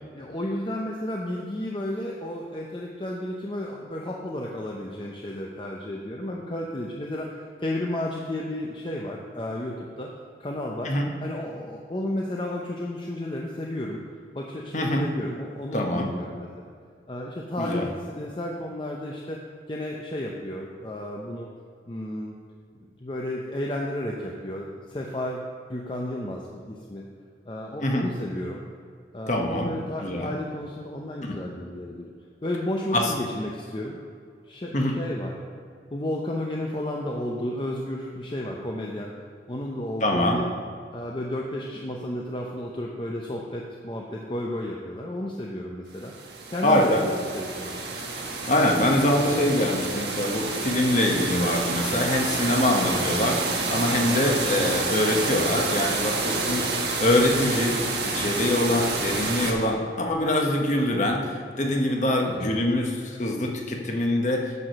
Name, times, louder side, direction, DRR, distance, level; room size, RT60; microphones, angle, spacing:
voice 1, 0.1-10.1 10.4-10.9 11.2-14.0 14.3-16.5 17.1-19.4 19.7-21.5 21.9-22.4 22.7-25.4 25.7-27.0 27.5-28.6 29.1-32.1 32.4-34.0 34.5-35.4 35.9-39.1 39.5-40.4 40.9-46.1 46.5-47.8 62.2-62.5, left 1 dB, 30° left, -2 dB, 0.6 m, -32 dB
voice 2, 15.7-16.1 17.6-17.9 27.8-28.0 29.3-29.7 30.0-30.3 31.2-31.4 32.9-33.1 34.7-35.0 40.0-40.4 46.6-47.0 48.5-56.6 57.0-57.8 58.0-64.6, left 1 dB, 45° left, 1 dB, 1.1 m, -24 dB
sound 1, 46.0-59.5, right 3 dB, 75° right, 1.2 m, -29 dB
9.7 x 4.8 x 6.5 m, 2.2 s
head